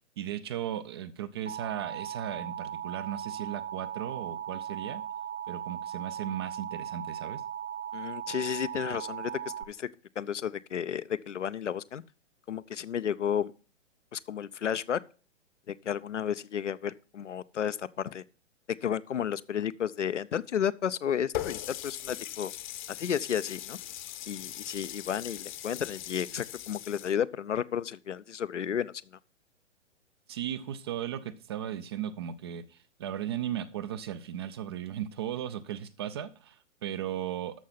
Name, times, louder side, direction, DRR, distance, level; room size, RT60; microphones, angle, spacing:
voice 1, 0.2-5.0 5.5-7.4 30.3-37.6, right 10 dB, 20° right, 0.4 m, -36 dB
Alarm, 1.5-9.6, right 10 dB, 90° right, 1.3 m, -38 dB
voice 2, 7.9-9.3 9.7-9.9 10.2-12.0 12.5-13.5 14.1-15.0 15.7-18.2 18.8-22.5 23.0-23.8 24.3-28.9, left 8 dB, 70° left, 0.7 m, -32 dB
Water tap faucet, 21.3-27.1, left 13 dB, 40° left, 0.9 m, -40 dB
13.0 x 5.6 x 5.7 m
figure-of-eight pair, 120°, 37 cm